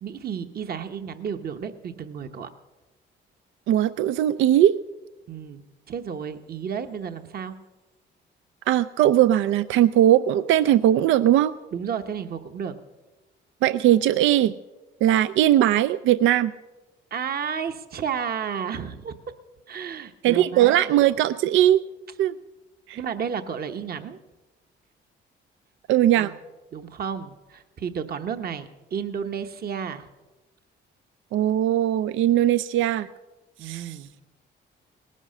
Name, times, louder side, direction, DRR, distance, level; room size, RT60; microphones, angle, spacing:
voice 1, 0.0-2.5 5.3-7.5 11.7-12.7 17.1-19.1 19.7-20.8 22.9-24.2 26.2-26.3 26.7-30.1 33.6-34.1, right 7 dB, 50° right, 8 dB, 1.0 m, -32 dB
voice 2, 3.7-4.7 8.7-11.5 13.6-14.5 15.0-16.5 20.2-21.8 22.2-22.4 22.9-23.0 25.9-26.3 31.3-33.1 33.6-34.0, right 12 dB, 80° right, 14 dB, 0.4 m, -19 dB
18.5 x 11.0 x 6.5 m, 1.1 s
cardioid pair, 90°, 20 cm